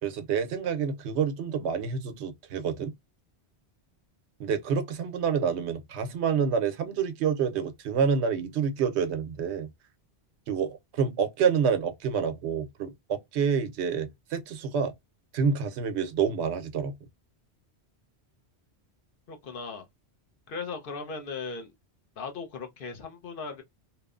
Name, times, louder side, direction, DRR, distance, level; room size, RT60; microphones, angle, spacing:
voice 1, 0.0-2.9 4.4-9.7 10.5-14.9 15.3-16.9, right 6 dB, 85° right, 0.9 m, -28 dB
voice 2, 19.3-19.9 20.5-21.7 22.2-23.6, left 4 dB, 60° left, 0.8 m, -37 dB
2.9 x 2.0 x 2.3 m
omnidirectional pair, 1.1 m